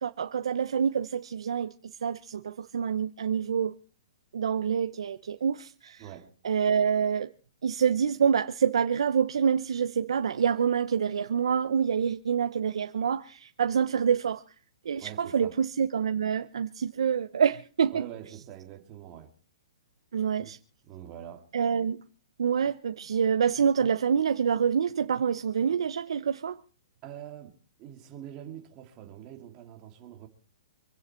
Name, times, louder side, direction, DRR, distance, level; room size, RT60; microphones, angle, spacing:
voice 1, 0.0-1.7 2.0-3.8 4.3-6.0 6.4-7.3 7.6-14.4 14.8-18.0 20.1-20.6 21.5-22.0 22.4-26.6, right 7 dB, 80° right, 0.9 m, -26 dB
voice 2, 6.0-6.3 15.0-15.6 17.9-19.3 20.4-20.5 20.8-21.5 27.0-30.3, right 11 dB, 25° right, 2.3 m, -44 dB
25.5 x 9.6 x 4.5 m
hypercardioid pair, 165°, 3 cm